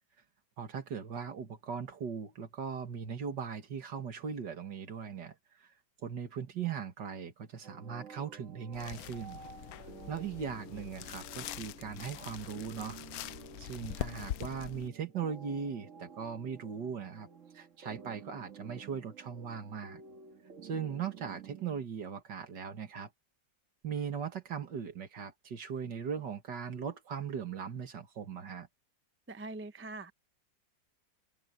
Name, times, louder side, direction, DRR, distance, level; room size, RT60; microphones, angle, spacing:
voice 1, 0.6-5.7 6.0-9.4 10.1-13.0 13.6-17.3 17.5-20.0 20.6-23.1 23.8-28.7, right 7 dB, 70° right, 2.4 m, -39 dB
sound 1, 7.6-21.9, right 6 dB, 45° right, 1.7 m, -52 dB
sound 2, 8.7-14.9, left 13 dB, 75° left, 0.9 m, -43 dB
voice 2, 29.3-30.1, right 2 dB, 15° right, 0.4 m, -42 dB
omnidirectional pair, 2.0 m